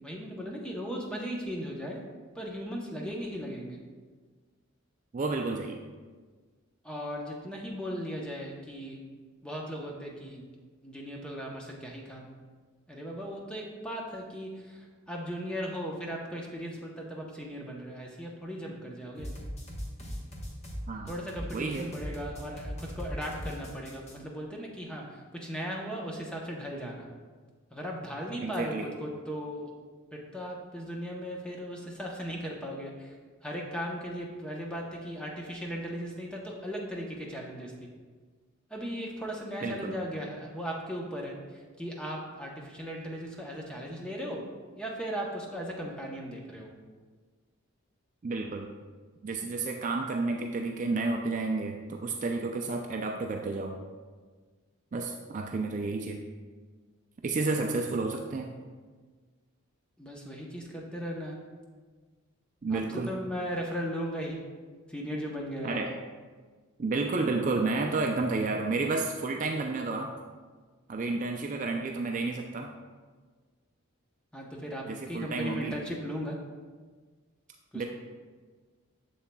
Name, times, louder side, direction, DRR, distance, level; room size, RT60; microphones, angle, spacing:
voice 1, 0.0-2.0 2.3-3.8 6.8-9.0 9.4-10.4 10.8-12.3 12.9-19.3 21.1-27.1 27.7-29.7 30.1-33.1 33.4-37.7 38.7-41.3 41.8-44.5 44.8-46.7 60.0-61.4 62.7-64.4 64.9-65.8 74.3-76.4 77.7-77.9, equal, 5° left, -1 dB, 0.7 m, -37 dB
voice 2, 5.1-5.8 20.9-21.1 21.5-21.9 28.4-28.9 39.6-40.0 48.2-48.7 49.2-53.8 54.9-56.2 57.2-58.5 62.6-63.1 65.6-66.0 66.8-70.1 70.9-72.7 74.9-75.8 77.7-77.9, right 3 dB, 35° right, 2 dB, 0.3 m, -31 dB
sound 1, 19.2-24.1, equal, 30° left, 1.0 m, -39 dB
7.1 x 7.0 x 2.2 m, 1.5 s
head